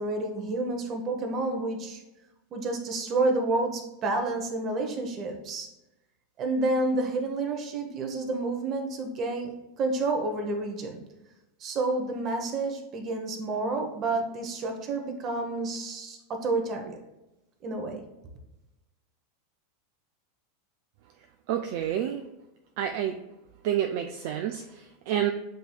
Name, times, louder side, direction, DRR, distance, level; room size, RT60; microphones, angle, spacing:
voice 1, 0.0-2.0 2.5-5.7 6.4-11.0 11.6-17.0 17.6-18.0, right 2 dB, 40° right, 4 dB, 0.9 m, -29 dB
voice 2, 21.5-22.2 22.8-23.2 23.6-25.3, right 10 dB, 55° right, 5 dB, 0.3 m, -29 dB
7.7 x 2.8 x 2.3 m, 0.98 s
figure-of-eight pair, 85°, 0 cm